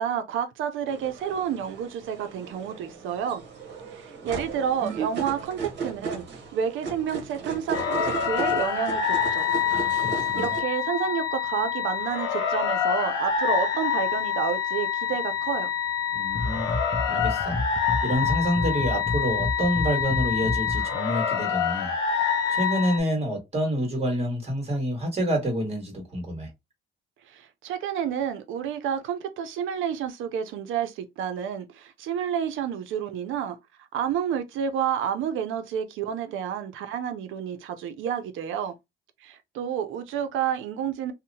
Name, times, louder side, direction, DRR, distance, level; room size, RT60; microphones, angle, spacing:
voice 1, 0.0-3.4 3.9-6.2 6.5-9.5 10.3-15.7 27.3-33.6 33.9-38.7 39.2-41.1, right 8 dB, 85° right, 0.5 m, -30 dB
sound 1, 0.9-10.6, right 5 dB, 65° right, 1.0 m, -36 dB
sound 2, 7.7-23.0, left 8 dB, 85° left, 0.9 m, -26 dB
voice 2, 9.7-10.5 16.1-16.7 17.1-17.6 18.0-26.5, equal, 30° right, 1.6 m, -28 dB
sound 3, 16.3-20.9, left 2 dB, 25° left, 0.5 m, -30 dB
2.7 x 2.1 x 2.7 m
cardioid pair, 90°, 20 cm